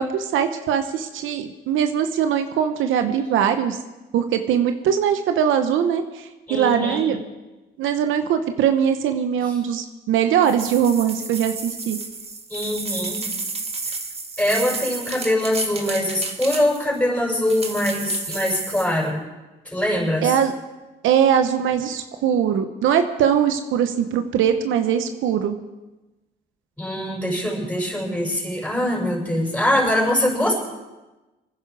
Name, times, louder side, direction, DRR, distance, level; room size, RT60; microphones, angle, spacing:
voice 1, 0.0-3.8 4.1-7.2 7.8-12.0 20.2-20.5 21.0-25.6, right 8 dB, 85° right, 8 dB, 1.0 m, -21 dB
voice 2, 6.5-7.1 9.5-9.6 12.5-13.3 13.9-14.0 14.4-19.2 19.6-20.4 26.8-30.6, left 1 dB, 5° left, -2 dB, 6.2 m, -23 dB
sound 1, 10.4-17.0 17.5-19.0, right 3 dB, 30° right, 1.9 m, -32 dB
24.5 x 10.5 x 4.8 m, 1.1 s
cardioid pair, 90°, 20 cm